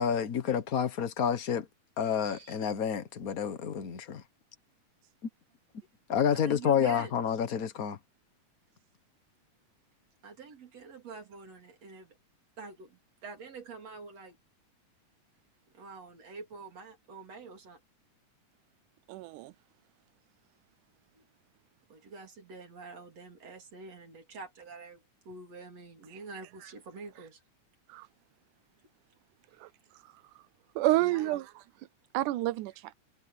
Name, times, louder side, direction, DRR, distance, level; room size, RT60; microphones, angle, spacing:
voice 1, 0.0-1.7 2.0-4.2 6.1-8.0, left 8 dB, 60° left, 0.9 m, -29 dB
voice 2, 2.2-2.6 6.1-7.1 10.2-12.2 12.6-14.4 15.7-17.8 21.1-21.2 21.9-27.4 29.6-29.7 30.9-31.4, right 4 dB, 55° right, 4.5 m, -47 dB
voice 3, 19.1-19.5 27.9-28.1 29.6-29.7 30.8-31.4 32.1-32.9, right 17 dB, 85° right, 2.1 m, -29 dB
omnidirectional pair, 3.5 m